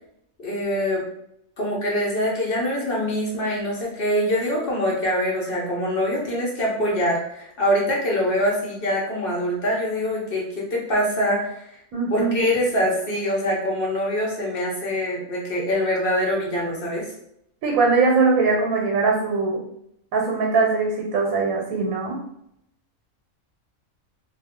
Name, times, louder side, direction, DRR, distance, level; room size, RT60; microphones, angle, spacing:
voice 1, 0.4-1.0 1.6-11.6 12.1-17.1, equal, 45° left, -3 dB, 0.9 m, -24 dB
voice 2, 11.9-12.4 17.6-19.6 20.1-22.2, right 4 dB, 85° right, -1 dB, 1.1 m, -21 dB
2.4 x 2.3 x 3.5 m, 0.75 s
omnidirectional pair, 1.5 m